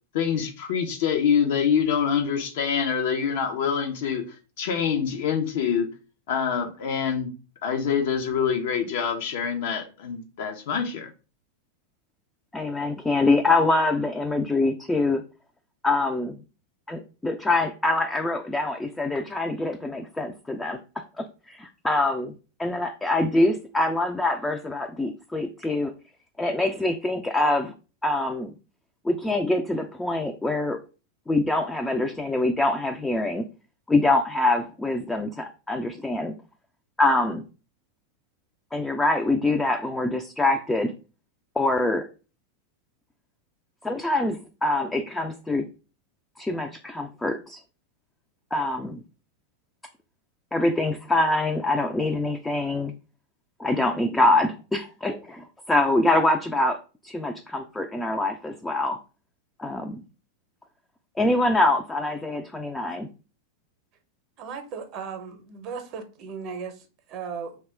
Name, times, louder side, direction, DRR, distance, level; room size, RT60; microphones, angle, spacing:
voice 1, 0.1-5.9 6.3-7.3 7.6-11.1, left 7 dB, 65° left, 0.6 m, -25 dB
voice 2, 12.5-15.2 15.8-16.4 16.9-20.8 21.2-22.3 22.6-25.9 26.4-27.7 28.0-28.5 29.0-30.8 31.3-33.5 33.9-36.3 37.0-37.4 38.7-40.9 41.6-42.1 43.8-45.7 46.4-47.6 48.5-49.0 50.5-52.9 53.6-59.0 59.6-60.0 61.2-63.1, left 2 dB, 10° left, 0.3 m, -24 dB
voice 3, 64.4-67.6, right 6 dB, 45° right, 0.6 m, -36 dB
2.8 x 2.2 x 3.2 m
hypercardioid pair, 100°, 0 cm